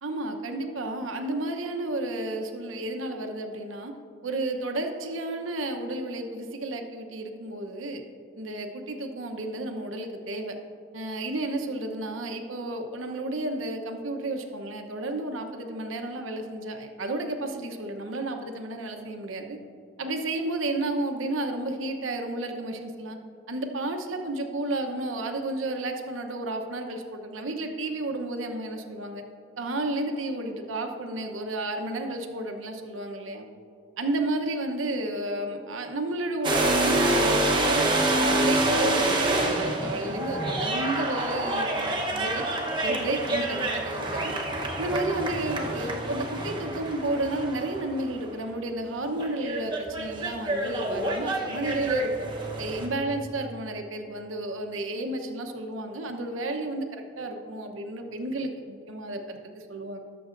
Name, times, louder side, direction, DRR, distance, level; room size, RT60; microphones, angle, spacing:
voice 1, 0.0-3.9 4.2-8.0 8.4-10.6 10.9-19.6 20.0-23.2 23.5-29.2 29.6-33.5 34.0-42.4 42.8-44.3 44.8-52.3 52.6-60.0, right 2 dB, 85° right, 4 dB, 0.9 m, -32 dB
sound 1, 36.4-48.3 49.2-52.9, right 1 dB, 25° right, 1.0 m, -27 dB
19.0 x 6.9 x 2.6 m, 2.6 s
head